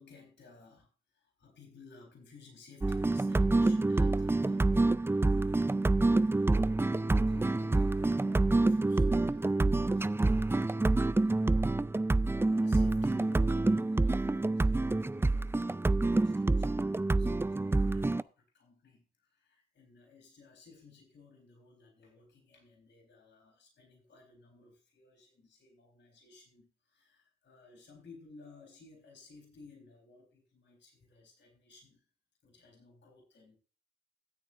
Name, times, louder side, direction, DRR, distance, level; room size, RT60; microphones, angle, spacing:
voice 1, 0.0-5.0 6.0-11.4 12.0-32.1 32.4-33.6, left 4 dB, 70° left, 2 dB, 4.0 m, -56 dB
sound 1, 2.8-18.2, right 2 dB, 10° right, 0.4 m, -27 dB
15.0 x 8.8 x 2.6 m, 0.33 s
supercardioid pair, 40°, 19 cm